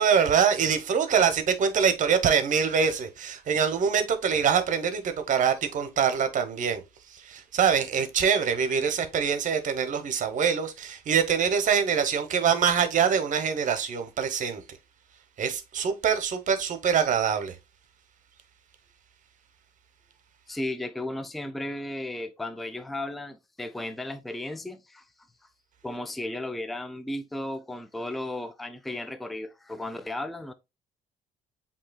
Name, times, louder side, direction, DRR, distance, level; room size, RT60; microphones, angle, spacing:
voice 1, 0.0-14.8 15.4-17.5, right 7 dB, 50° right, 0.9 m, -24 dB
voice 2, 20.5-25.0 25.8-30.5, left 1 dB, ahead, 0.4 m, -35 dB
7.4 x 2.8 x 2.2 m
cardioid pair, 110°, 17 cm